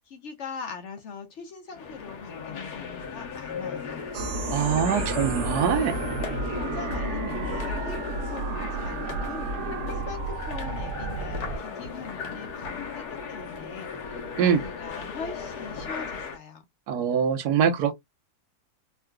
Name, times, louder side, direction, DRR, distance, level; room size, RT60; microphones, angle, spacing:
voice 1, 0.0-4.1 5.4-6.0 6.5-8.0 8.3-9.5 9.9-16.6, left 5 dB, 60° left, 0.8 m, -41 dB
sound 1, 1.7-16.4, left 5 dB, 80° left, 1.4 m, -36 dB
sound 2, 4.1-11.6, right 3 dB, 65° right, 0.7 m, -32 dB
voice 2, 4.5-5.9 14.4-14.6 16.9-17.9, right 7 dB, 90° right, 1.2 m, -23 dB
3.7 x 2.3 x 2.2 m
omnidirectional pair, 1.7 m